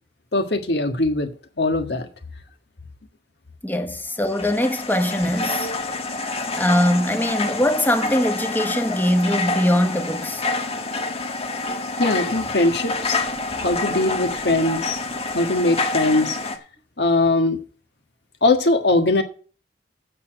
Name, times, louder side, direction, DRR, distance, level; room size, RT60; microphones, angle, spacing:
voice 1, 0.3-1.3 1.6-2.1 12.0-13.2 13.6-15.0 15.3-16.4 17.0-17.6 18.4-19.2, left 2 dB, 70° left, 1.6 m, -20 dB
voice 2, 3.6-5.7 6.6-10.4, left 1 dB, 10° left, 1.2 m, -21 dB
sound 1, 4.2-16.6, left 3 dB, 35° left, 1.5 m, -27 dB
8.4 x 6.8 x 7.9 m
head